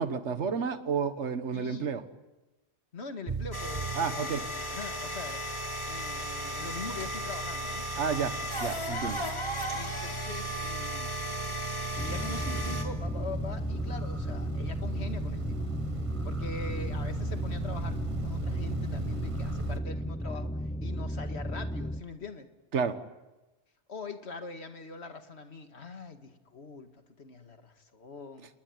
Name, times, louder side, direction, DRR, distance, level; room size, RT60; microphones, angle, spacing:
voice 1, 0.0-2.0 4.0-4.4 8.0-8.3 8.6-9.2 22.7-22.9, right 6 dB, 80° right, 10 dB, 1.6 m, -30 dB
voice 2, 1.5-1.9 2.9-5.4 5.9-7.9 8.9-9.2 9.7-11.1 12.0-15.7 16.2-22.5 23.9-28.5, left 3 dB, 70° left, 7 dB, 2.2 m, -43 dB
sound 1, 3.3-19.8, right 4 dB, 30° right, 1.1 m, -39 dB
sound 2, 3.5-12.8, equal, 25° left, 3.8 m, -36 dB
sound 3, 12.0-22.0, equal, 5° left, 0.7 m, -34 dB
29.0 x 20.5 x 9.5 m, 1.1 s
omnidirectional pair, 1.2 m